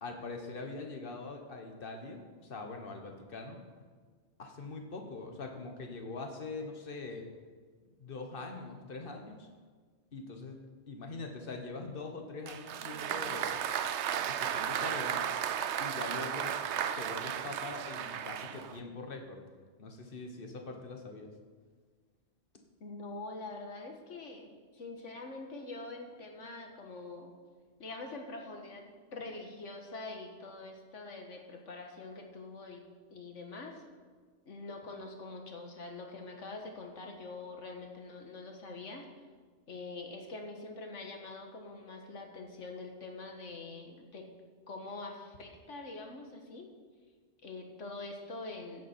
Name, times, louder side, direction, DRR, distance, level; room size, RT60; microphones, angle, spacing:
voice 1, 0.0-3.6 4.4-7.3 8.0-9.5 10.1-10.6 10.9-13.6 14.3-15.4 15.8-16.6 17.0-19.4 19.8-21.3, left 3 dB, 50° left, 3 dB, 1.6 m, -43 dB
Applause, 12.5-18.8, right 9 dB, 70° right, 0.9 m, -34 dB
voice 2, 22.8-27.3 27.8-32.8 33.1-33.8 34.5-39.1 39.7-44.3 44.7-46.7 47.4-48.8, left 3 dB, 75° left, 2 dB, 1.9 m, -44 dB
15.5 x 8.4 x 4.5 m, 1.5 s
omnidirectional pair, 1.3 m